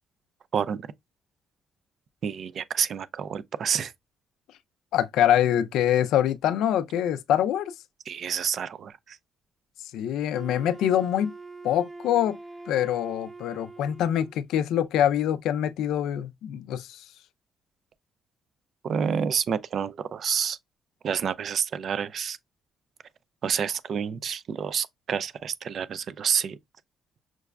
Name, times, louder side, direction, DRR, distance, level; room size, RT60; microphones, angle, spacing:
voice 1, 2.2-3.9 8.1-9.2 18.8-20.6 21.0-22.4 23.4-26.6, right 7 dB, 60° right, 0.3 m, -28 dB
voice 2, 4.9-7.7 9.9-11.3 11.6-12.4 12.7-17.1, left 10 dB, 85° left, 0.3 m, -24 dB
Wind instrument woodwind instrument, 10.3-14.5, right 3 dB, 10° right, 0.6 m, -43 dB
5.8 x 2.2 x 2.3 m
cardioid pair, 90°, 0 cm